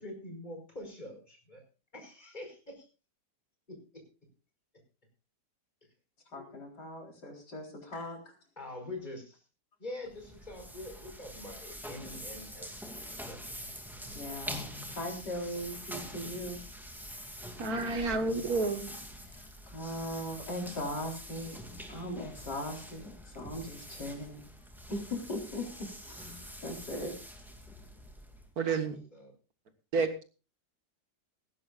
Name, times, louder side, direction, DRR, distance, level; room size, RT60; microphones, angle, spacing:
voice 1, 0.0-1.6 1.9-2.8 3.7-4.0 6.3-6.5 8.6-9.4 9.8-12.7 12.9-13.5 28.6-28.8 29.1-29.3, left 1 dB, 25° left, 3 dB, 5.0 m, -45 dB
voice 2, 6.3-8.3 14.1-16.6 19.2-21.6 21.9-24.5 24.9-27.1, left 1 dB, 85° left, 1 dB, 4.5 m, -39 dB
sound 1, 10.1-28.5, equal, ahead, 2.3 m, -45 dB
voice 3, 17.6-18.9 28.6-29.0 29.9-30.3, right 4 dB, 65° right, 8 dB, 1.9 m, -30 dB
18.0 x 16.0 x 2.5 m, 0.34 s
omnidirectional pair, 1.7 m